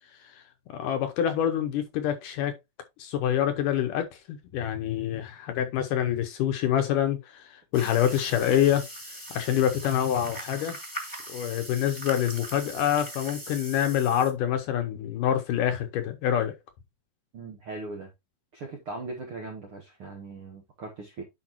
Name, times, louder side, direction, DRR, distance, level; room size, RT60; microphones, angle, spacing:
voice 1, 0.7-2.5 3.0-8.8 9.3-10.8 11.3-16.6, left 10 dB, 70° left, 2.2 m, -26 dB
sound 1, 7.7-14.3, equal, 10° left, 1.5 m, -40 dB
voice 2, 17.3-18.1 18.5-21.2, right 3 dB, 65° right, 1.4 m, -39 dB
10.0 x 5.1 x 3.0 m
omnidirectional pair, 4.3 m